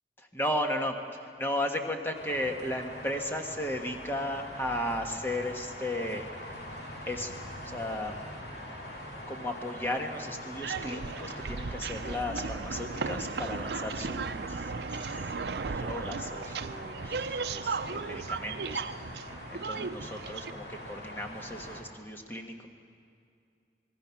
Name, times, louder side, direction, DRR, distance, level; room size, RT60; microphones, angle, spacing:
voice 1, 0.2-6.6 7.0-7.3 7.6-8.2 9.3-19.2 19.5-22.7, left 1 dB, 15° left, 3 dB, 1.4 m, -35 dB
sound 1, 2.1-21.8, equal, 60° left, 3.2 m, -43 dB
sound 2, 10.6-20.5, right 5 dB, 70° right, 0.5 m, -36 dB
27.0 x 21.0 x 5.9 m, 2.4 s
head